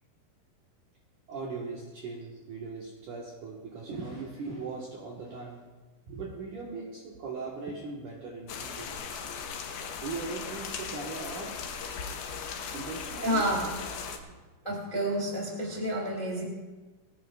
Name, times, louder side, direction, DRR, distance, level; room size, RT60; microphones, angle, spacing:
voice 1, 1.3-5.7 6.1-9.1 10.0-11.7 12.1-12.2 12.7-13.5 14.2-14.4, right 4 dB, 60° right, -3 dB, 2.4 m, -39 dB
sound 1, 8.5-14.2, left 6 dB, 70° left, 2.6 m, -38 dB
voice 2, 13.2-13.7 14.6-16.4, right 1 dB, 15° left, -3 dB, 2.3 m, -29 dB
23.5 x 16.5 x 2.5 m, 1.3 s
omnidirectional pair, 5.5 m